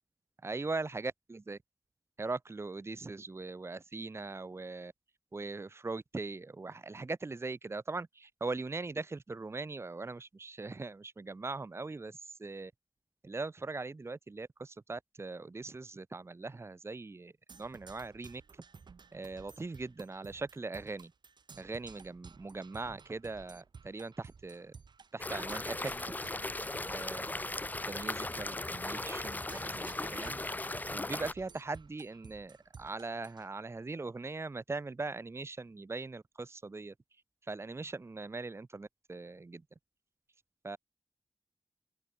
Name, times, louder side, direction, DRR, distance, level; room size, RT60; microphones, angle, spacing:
voice 1, 0.4-1.6 2.2-4.9 5.3-12.7 13.2-17.3 17.6-18.4 19.1-21.1 21.6-24.7 25.1-26.1 26.9-27.3 27.9-30.4 30.9-36.9 37.5-39.6 40.6-40.8, right 3 dB, 35° right, 0.8 m, -40 dB
Percussion, 17.5-33.5, right 5 dB, 85° right, 1.6 m, -55 dB
sound 1, 25.2-31.3, left 2 dB, 25° left, 0.7 m, -37 dB
open air
wide cardioid pair, 100°, 7 cm